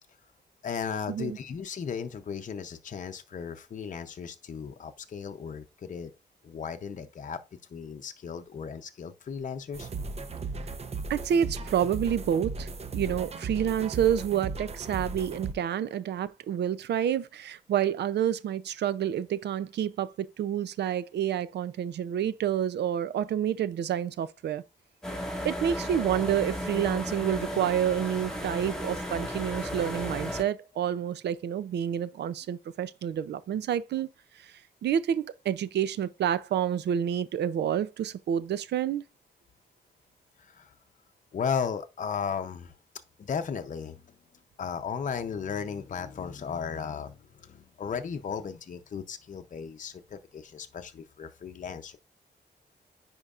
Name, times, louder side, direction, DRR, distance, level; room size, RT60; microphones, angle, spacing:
voice 1, 0.6-6.1 6.4-7.4 7.7-9.9 40.4-40.7 41.3-42.8 43.2-44.0 44.6-52.0, left 6 dB, 50° left, 0.7 m, -35 dB
sound 1, 9.7-15.5, right 4 dB, 40° right, 0.7 m, -36 dB
voice 2, 11.1-24.6 25.4-34.1 34.4-34.5 34.8-39.0, right 9 dB, 80° right, 0.5 m, -29 dB
sound 2, 25.0-30.4, equal, 5° left, 2.3 m, -34 dB
9.8 x 4.5 x 2.5 m
cardioid pair, 85°, 17 cm